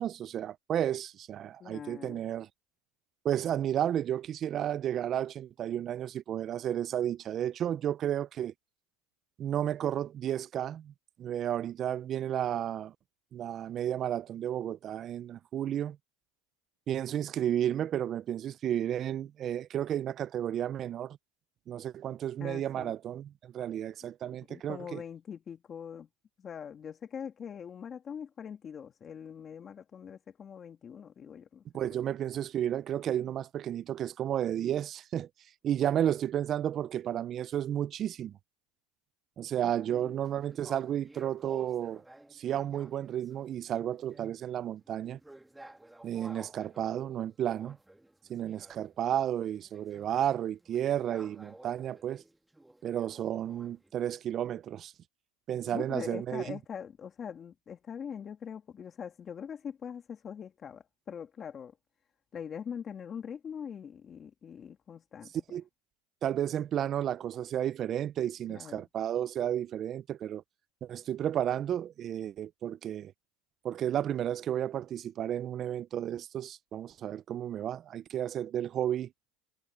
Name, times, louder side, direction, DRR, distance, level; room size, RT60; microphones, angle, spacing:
voice 1, 0.0-2.5 3.2-8.5 9.4-10.9 11.2-12.9 13.3-16.0 16.9-21.2 21.7-25.0 31.7-35.3 35.6-38.3 39.4-42.0 42.3-45.2 46.0-47.8 48.3-52.2 52.8-54.9 55.5-56.6 65.5-65.6 66.2-70.4 70.8-73.1 73.6-79.1, right 10 dB, 35° right, 0.4 m, -32 dB
voice 2, 1.6-2.2 22.4-22.9 24.5-26.1 26.4-31.6 31.9-32.0 39.6-40.2 55.7-61.8 62.3-65.3 68.5-68.9, left 7 dB, 30° left, 2.3 m, -43 dB
sound 1, 40.2-43.6 43.9-53.9, right 1 dB, 5° right, 1.6 m, -54 dB
supercardioid pair, 130°, 0 cm